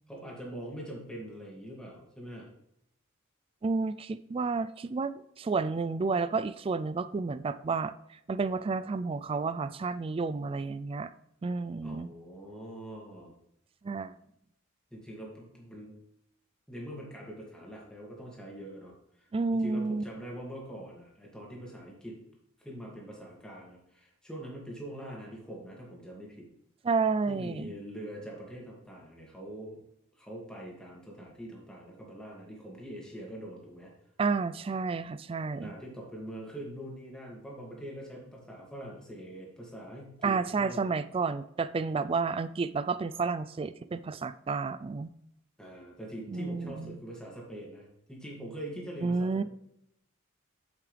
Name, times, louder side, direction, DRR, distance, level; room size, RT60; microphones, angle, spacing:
voice 1, 0.1-2.5 11.8-13.3 14.9-16.0 16.7-22.2 22.6-26.5 27.3-29.8 30.2-33.9 35.6-40.9 45.6-49.4, right 1 dB, 5° left, -3 dB, 2.2 m, -43 dB
voice 2, 3.6-7.9 8.3-11.1 11.4-12.1 13.8-14.1 19.3-20.0 26.8-27.7 34.2-35.7 40.2-45.1 46.3-47.0 49.0-49.4, right 4 dB, 25° right, 14 dB, 0.3 m, -31 dB
7.6 x 7.6 x 3.3 m, 0.78 s
head